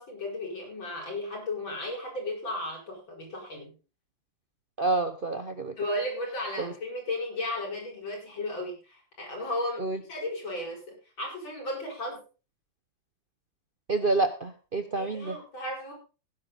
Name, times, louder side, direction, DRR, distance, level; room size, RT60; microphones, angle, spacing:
voice 1, 0.0-3.8 5.8-12.2 14.9-15.9, left 1 dB, 85° left, -1 dB, 7.1 m, -35 dB
voice 2, 4.8-5.7 6.6-6.7 9.8-10.0 13.9-15.4, right 3 dB, 45° right, 9 dB, 0.7 m, -28 dB
16.5 x 10.5 x 4.0 m, 0.34 s
omnidirectional pair, 2.1 m